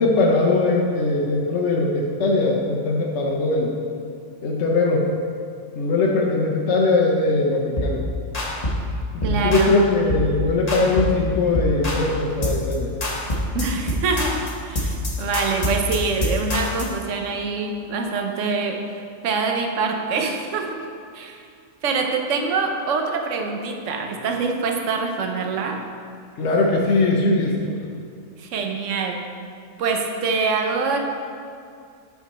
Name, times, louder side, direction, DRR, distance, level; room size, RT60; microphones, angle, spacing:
voice 1, 0.0-3.7 4.4-5.0 5.8-8.0 9.1-12.9 26.4-27.7, left 2 dB, 65° left, -2 dB, 1.1 m, -20 dB
sound 1, 7.8-8.0 8.3-8.9 9.2-9.7 10.1-10.3 10.7-11.2 11.6-12.1 12.4-12.7 13.0-17.0, left 1 dB, 30° left, 1.2 m, -25 dB
voice 2, 9.2-9.7 13.5-18.8 19.2-20.9 21.1-21.4 21.8-25.8 28.4-29.2 29.8-31.0, right 4 dB, 75° right, 3 dB, 1.1 m, -25 dB
8.2 x 5.9 x 4.2 m, 2.3 s
omnidirectional pair, 1.3 m